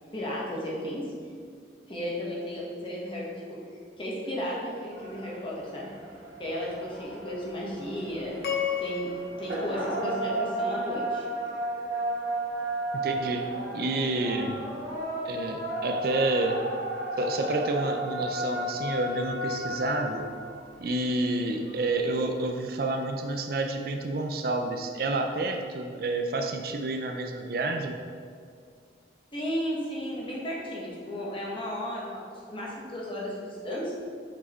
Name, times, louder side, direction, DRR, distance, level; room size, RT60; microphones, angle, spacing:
voice 1, 0.1-1.0 1.9-3.3 4.0-5.9 6.4-8.4 8.8-9.1 9.4-11.3 29.3-33.9, equal, 30° left, -4 dB, 1.3 m, -34 dB
sound 1, 4.9-22.4, right 1 dB, 80° right, 1.8 m, -34 dB
sound 2, 8.4-10.8, left 6 dB, 55° left, 0.8 m, -34 dB
voice 2, 13.0-14.6 15.3-16.6 17.2-20.3 20.8-28.0, right 2 dB, 55° right, 5 dB, 0.5 m, -29 dB
6.9 x 4.8 x 4.4 m, 2.2 s
head